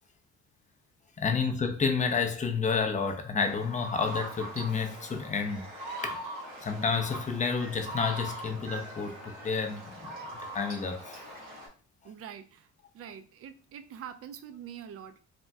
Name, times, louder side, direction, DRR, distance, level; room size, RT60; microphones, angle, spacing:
voice 1, 1.2-5.6 6.0-6.2 6.6-10.1 10.5-11.2, left 5 dB, 25° left, 0.5 m, -30 dB
sound 1, 3.4-11.7, right 1 dB, 75° right, 1.4 m, -41 dB
voice 2, 12.0-12.7 12.9-15.2, right 9 dB, 50° right, 0.4 m, -44 dB
3.4 x 2.1 x 2.6 m
cardioid pair, 90°, 30 cm